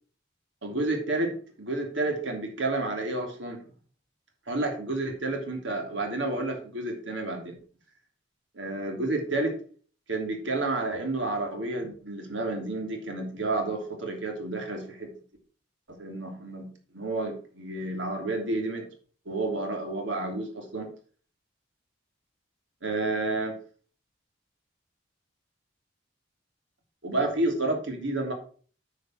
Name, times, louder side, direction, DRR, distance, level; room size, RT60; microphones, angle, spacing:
voice 1, 0.6-3.6 4.5-7.6 8.5-9.6 10.1-15.1 15.9-18.9 19.2-20.9 22.8-23.6 27.0-28.3, right 2 dB, 80° right, 2 dB, 3.1 m, -30 dB
9.6 x 5.4 x 6.1 m, 0.43 s
head